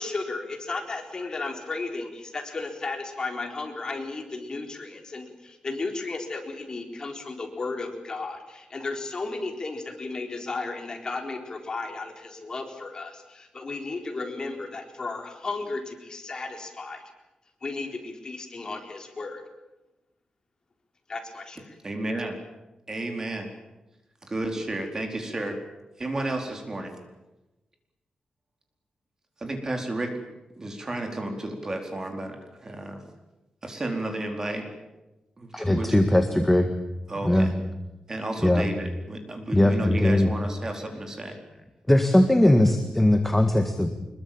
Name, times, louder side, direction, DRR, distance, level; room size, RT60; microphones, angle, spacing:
voice 1, 0.0-17.0 17.6-19.4 21.1-21.7, left 3 dB, 35° left, 4 dB, 4.2 m, -34 dB
voice 2, 21.8-22.4 22.9-23.5 24.2-25.6 26.0-27.0 29.4-30.2 30.6-33.0 33.6-34.7 35.4-36.0 37.1-37.7 38.1-41.4, right 1 dB, 25° right, 4 dB, 4.4 m, -32 dB
voice 3, 35.5-36.7 37.2-37.5 38.4-38.7 39.5-40.3 41.9-43.9, left 1 dB, 10° left, 6 dB, 1.8 m, -20 dB
25.0 x 22.0 x 8.9 m, 1.0 s
wide cardioid pair, 135°, 2 cm